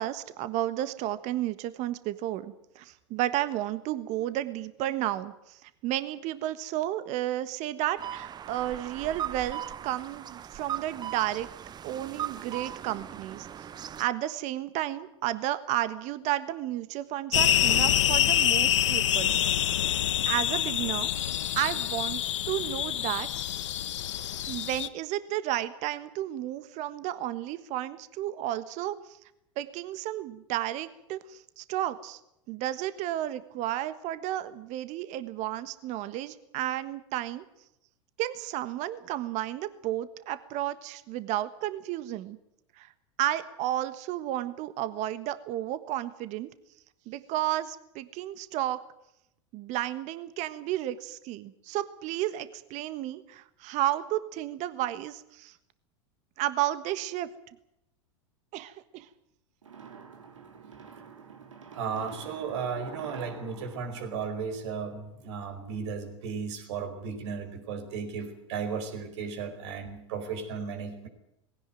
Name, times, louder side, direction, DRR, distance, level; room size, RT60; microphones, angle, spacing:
voice 1, 0.0-11.5 11.8-13.7 14.0-19.4 19.9-21.1 21.6-22.2 22.5-23.3 24.5-29.2 29.6-32.2 32.5-37.4 38.2-42.4 42.8-42.9 43.2-46.5 47.1-48.8 49.5-55.6 56.4-57.3 58.5-59.1, right 13 dB, 50° right, 13 dB, 1.4 m, -32 dB
sound 1, 8.0-14.0, right 10 dB, 25° right, 0.7 m, -39 dB
sound 2, 17.3-24.9, left 12 dB, 75° left, 1.1 m, -26 dB
sound 3, 59.6-65.0, right 6 dB, 90° right, 3.2 m, -48 dB
voice 2, 61.7-71.1, right 5 dB, 70° right, 7 dB, 4.8 m, -35 dB
19.5 x 17.0 x 9.3 m, 0.81 s
hypercardioid pair, 95°, 16 cm